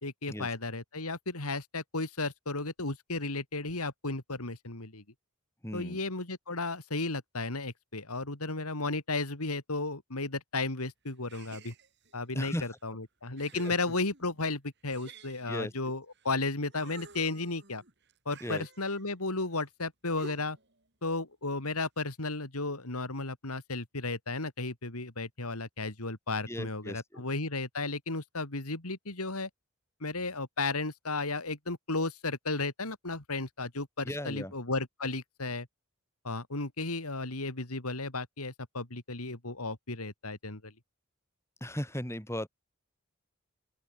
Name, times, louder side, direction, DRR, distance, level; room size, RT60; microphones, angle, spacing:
voice 1, 0.0-5.0 5.7-11.7 12.1-17.8 18.2-20.6 21.0-29.5 30.0-35.7 36.2-40.7, left 3 dB, 85° left, 3.5 m, -34 dB
voice 2, 5.6-6.0 12.3-12.7 13.7-13.8 15.5-15.7 18.4-18.7 26.5-27.2 34.0-34.5 41.6-42.5, equal, 10° left, 7.6 m, -36 dB
sound 1, 11.3-12.2 12.8-12.9 13.4-14.4 14.9-16.3 16.7-19.2 20.2-20.7, right 3 dB, 50° right, 4.6 m, -51 dB
open air
head